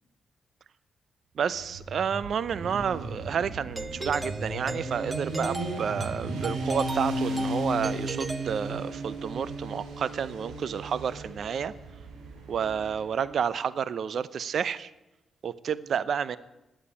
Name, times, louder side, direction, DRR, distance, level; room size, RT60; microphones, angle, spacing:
voice 1, 1.3-11.7 12.5-14.9 15.4-16.4, right 7 dB, 65° right, 17 dB, 0.8 m, -30 dB
Motorcycle, 1.5-13.2, right 1 dB, 90° right, 3.9 m, -35 dB
Doorbell, 3.8-9.2, right 2 dB, 25° right, 1.0 m, -38 dB
16.5 x 9.8 x 8.5 m, 0.98 s
supercardioid pair, 60°, 0 cm